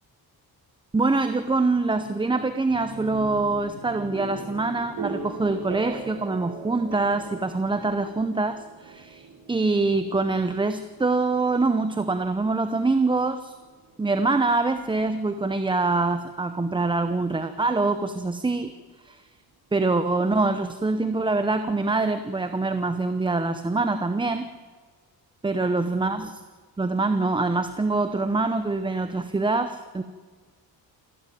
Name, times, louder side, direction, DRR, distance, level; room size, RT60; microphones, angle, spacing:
voice 1, 0.9-13.5 14.0-18.7 19.0-19.2 19.7-24.5 25.4-26.4 26.8-30.0, right 3 dB, 15° right, 9 dB, 0.7 m, -24 dB
sound 1, 2.7-16.5, right 5 dB, 65° right, 3.1 m, -41 dB
27.5 x 12.5 x 9.3 m, 1.5 s
wide cardioid pair, 155°, 38 cm